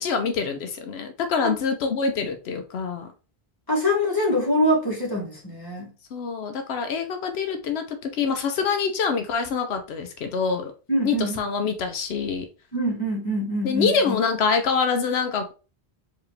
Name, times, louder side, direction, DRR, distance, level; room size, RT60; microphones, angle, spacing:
voice 1, 0.0-3.1 6.1-10.7 11.0-12.5 13.6-15.5, left 5 dB, 90° left, 0.9 m, -25 dB
voice 2, 3.7-5.9 10.9-11.4 12.7-14.2, equal, 20° left, 1.7 m, -24 dB
4.6 x 2.9 x 3.2 m
omnidirectional pair, 1.0 m